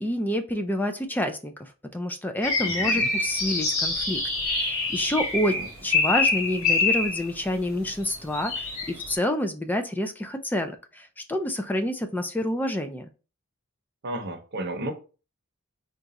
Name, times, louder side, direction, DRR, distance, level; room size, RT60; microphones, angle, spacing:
voice 1, 0.0-4.2 4.5-13.1, left 1 dB, 10° left, 0.3 m, -28 dB
sound 1, 2.4-7.3 8.1-9.1, left 3 dB, 65° left, 2.1 m, -26 dB
voice 2, 2.6-3.1 5.6-5.7 14.0-14.9, right 1 dB, 50° right, 0.8 m, -33 dB
3.8 x 2.3 x 4.0 m
head